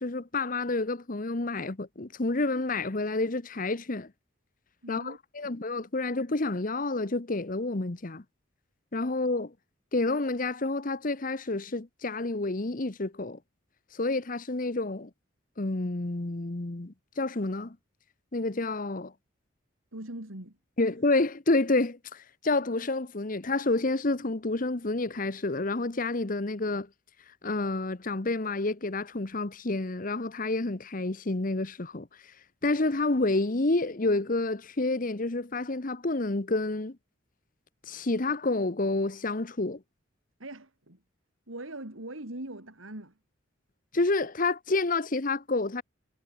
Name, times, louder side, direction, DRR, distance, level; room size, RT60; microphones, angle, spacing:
voice 1, 0.0-4.1 4.9-8.2 8.9-9.5 9.9-13.4 13.9-15.1 15.6-17.8 18.3-19.1 20.8-26.9 27.4-32.1 32.6-37.0 37.9-39.8 43.9-45.8, left 2 dB, 45° left, 1.1 m, -29 dB
voice 2, 4.8-5.2 5.4-5.5 19.9-20.6 40.4-41.0 41.5-43.2, right 1 dB, 90° right, 4.0 m, -41 dB
head